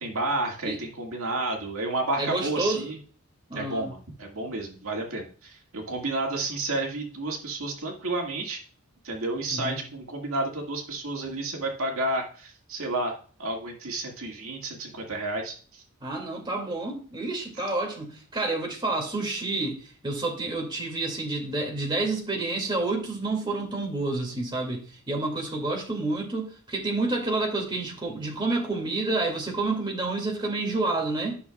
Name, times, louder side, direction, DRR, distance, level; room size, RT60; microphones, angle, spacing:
voice 1, 0.0-3.0 3.6-8.6 9.0-15.8, right 2 dB, 75° right, 2.0 m, -31 dB
voice 2, 2.2-2.9 3.5-3.9 9.5-9.8 16.0-31.4, right 2 dB, 20° right, 2.3 m, -29 dB
12.5 x 6.5 x 2.3 m
head